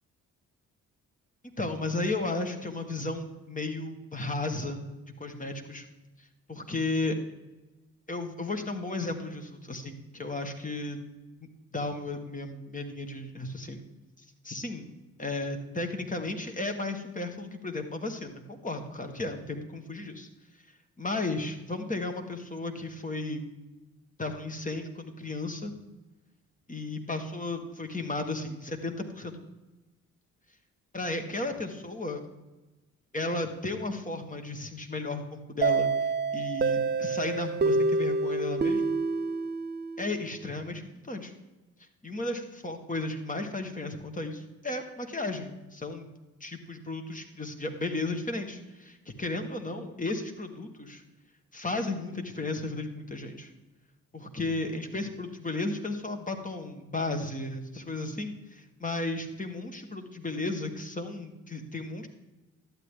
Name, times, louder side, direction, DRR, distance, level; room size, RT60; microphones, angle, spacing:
voice 1, 1.6-4.9 5.2-5.8 6.5-7.1 8.1-11.0 11.7-13.8 14.4-14.9 15.2-20.3 21.0-23.4 24.2-25.7 26.7-29.4 30.9-32.2 33.1-35.9 36.3-39.0 40.0-41.3 42.0-46.1 46.4-51.0 51.5-53.5 54.1-62.1, left 2 dB, 20° left, 4 dB, 1.7 m, -34 dB
sound 1, 35.6-40.3, right 3 dB, 25° right, 0.8 m, -27 dB
12.0 x 8.8 x 3.8 m, 1.1 s
figure-of-eight pair, 40°, 41 cm